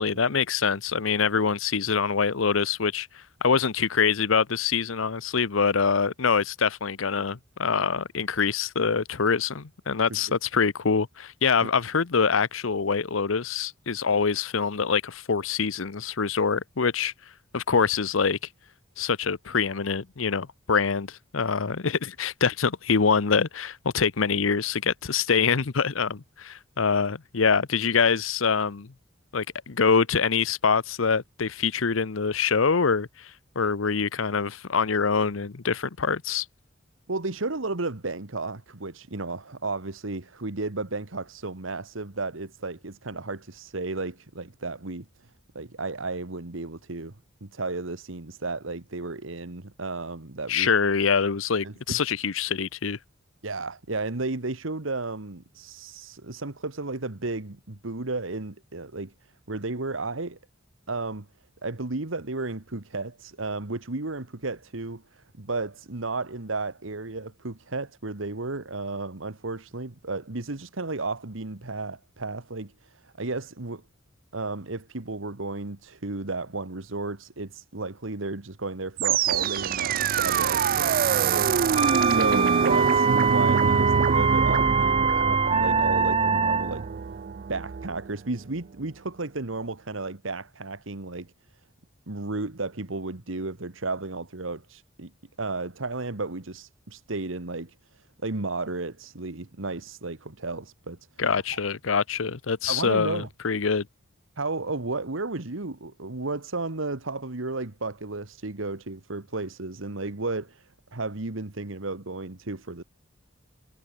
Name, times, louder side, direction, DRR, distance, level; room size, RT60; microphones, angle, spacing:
voice 1, 0.0-3.1 3.4-17.1 17.5-18.4 19.0-28.9 29.3-36.5 50.5-53.0 101.2-103.9, left 5 dB, 80° left, 0.8 m, -25 dB
voice 2, 37.1-47.1 47.4-50.7 51.6-52.1 53.4-59.1 59.5-60.4 60.9-61.3 61.6-73.8 74.3-86.9 87.5-91.3 92.1-95.1 95.4-101.2 101.5-101.6 102.7-103.3 104.4-112.8, right 3 dB, 75° right, 1.6 m, -33 dB
sound 1, 79.0-88.1, right 6 dB, 45° right, 0.4 m, -25 dB
sound 2, 81.8-86.9, right 5 dB, 30° right, 1.7 m, -23 dB
head